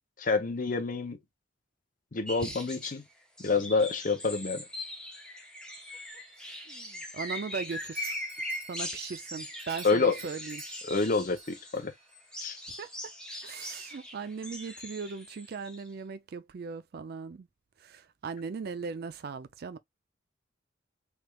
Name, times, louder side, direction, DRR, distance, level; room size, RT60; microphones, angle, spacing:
voice 1, 0.2-1.2 2.1-3.0 3.4-4.6 9.8-10.1 10.9-11.9 12.4-12.6, left 4 dB, 40° left, 0.6 m, -28 dB
sound 1, 2.3-3.0 3.4-11.8 12.1-15.9, left 1 dB, 5° left, 0.8 m, -41 dB
voice 2, 6.7-8.2 8.7-10.6 12.8-12.9 13.4-17.5 17.8-19.8, right 5 dB, 50° right, 0.4 m, -38 dB
Doorbell, 7.7-12.2, right 6 dB, 30° right, 1.1 m, -50 dB
3.4 x 3.1 x 2.3 m
head